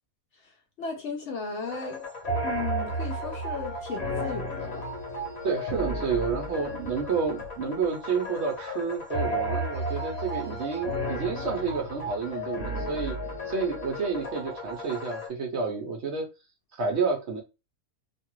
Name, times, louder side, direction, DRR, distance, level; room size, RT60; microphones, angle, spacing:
voice 1, 0.8-2.1 2.4-4.9, left 5 dB, 65° left, 0.7 m, -35 dB
sound 1, 1.7-15.3, right 1 dB, 50° left, 1.1 m, -33 dB
sound 2, 3.2-9.3, left 9 dB, 80° left, 1.0 m, -45 dB
voice 2, 5.4-13.2 13.4-16.3 16.7-17.4, right 5 dB, 60° right, 0.7 m, -30 dB
2.6 x 2.4 x 2.9 m
omnidirectional pair, 1.6 m